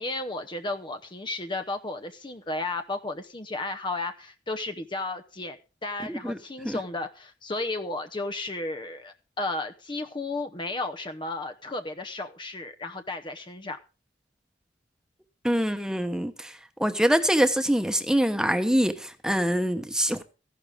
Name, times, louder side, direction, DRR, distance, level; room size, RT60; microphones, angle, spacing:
voice 1, 0.0-5.6 5.8-13.8, left 2 dB, 25° left, 0.8 m, -33 dB
voice 2, 15.4-16.5 16.8-20.2, equal, 5° right, 1.1 m, -24 dB
15.0 x 11.5 x 3.5 m
head